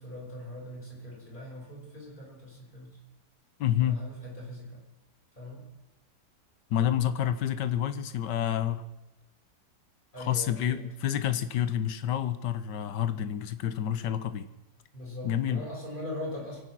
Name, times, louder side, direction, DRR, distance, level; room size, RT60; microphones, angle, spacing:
voice 1, 0.0-3.0 3.8-4.8 5.4-5.6 10.1-10.8 14.9-16.6, left 1 dB, 25° left, -3 dB, 5.4 m, -41 dB
voice 2, 3.6-4.0 6.7-8.8 10.2-14.5 15.2-15.6, left 10 dB, 85° left, 12 dB, 1.5 m, -29 dB
24.0 x 8.9 x 6.1 m, 0.98 s
omnidirectional pair, 1.8 m